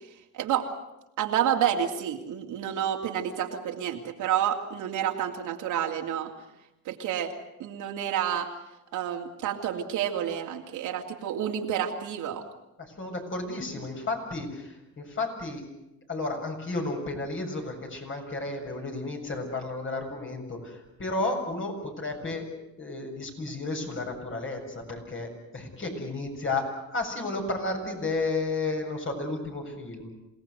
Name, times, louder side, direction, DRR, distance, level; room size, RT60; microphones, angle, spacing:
voice 1, 0.3-0.7 1.2-6.3 6.8-7.3 7.6-8.5 8.9-12.4, right 9 dB, 85° right, 2 dB, 2.8 m, -29 dB
voice 2, 12.8-15.7 16.1-26.7 26.9-30.1, left 2 dB, 40° left, 2 dB, 7.4 m, -32 dB
27.5 x 18.0 x 8.1 m, 0.91 s
cardioid pair, 90°, 30 cm